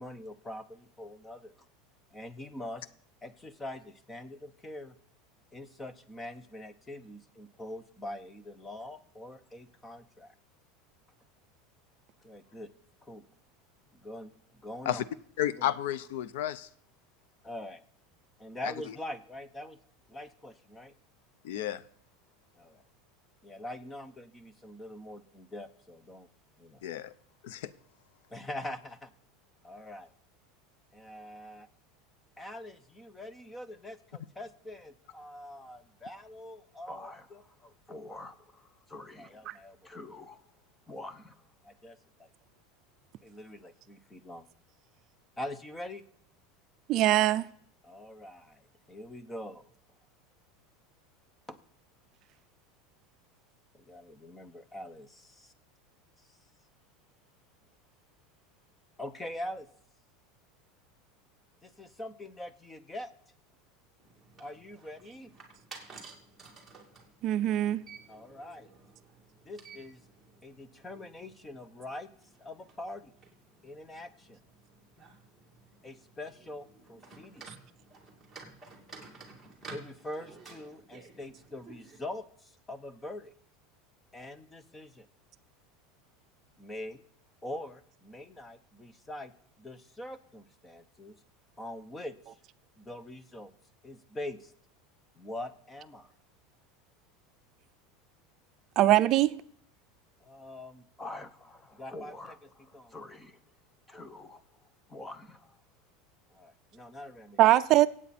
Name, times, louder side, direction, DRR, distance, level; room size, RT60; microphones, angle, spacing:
voice 1, 0.0-1.5 2.1-2.8 3.2-4.9 5.5-10.3 12.2-12.7 13.0-13.2 13.9-14.3 14.6-15.0 15.4-15.7 17.4-17.8 18.4-19.8 20.1-20.9 22.6-22.8 23.4-26.3 26.6-26.8 28.3-29.1 29.6-30.1 30.9-31.7 32.4-40.4 40.9-42.3 43.2-44.5 45.4-46.0 47.8-48.6 48.9-49.7 51.5-51.6 53.7-55.5 59.0-59.7 61.6-63.1 64.4-65.3 68.1-68.7 69.4-70.0 70.4-72.1 72.4-73.1 73.6-74.4 75.8-77.4 79.7-83.3 84.1-85.1 86.6-87.0 87.4-89.3 89.6-91.2 91.6-92.2 92.8-93.5 93.8-94.5 95.2-96.1 100.2-103.4 103.9-104.4 104.9-105.6 106.3-107.4 107.8-107.9, left 1 dB, 10° left, 0.8 m, -43 dB
voice 2, 15.4-16.7 18.6-18.7 21.4-21.8 26.8-27.1 27.4-27.7, left 12 dB, 75° left, 0.7 m, -32 dB
voice 3, 46.9-47.5 67.2-67.8 98.8-99.4 107.4-107.9, right 14 dB, 40° right, 0.5 m, -22 dB
sound 1, 64.0-82.0, right 4 dB, 5° right, 2.6 m, -53 dB
24.5 x 8.7 x 4.3 m
supercardioid pair, 160°, 0 cm